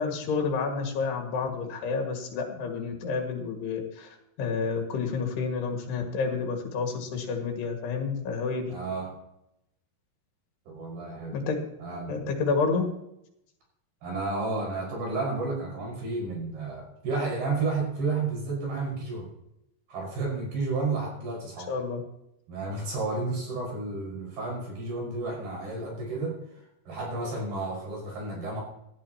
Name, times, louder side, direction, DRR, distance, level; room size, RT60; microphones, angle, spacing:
voice 1, 0.0-4.1 4.4-8.7 11.3-11.6 12.1-12.9 21.7-22.0, left 4 dB, 90° left, 1 dB, 4.0 m, -29 dB
voice 2, 8.7-9.1 10.7-11.4 11.8-12.1 14.0-19.3 19.9-21.7 22.5-26.4 26.9-28.6, right 3 dB, 75° right, -3 dB, 7.6 m, -31 dB
18.0 x 12.5 x 3.0 m, 0.80 s
omnidirectional pair, 4.6 m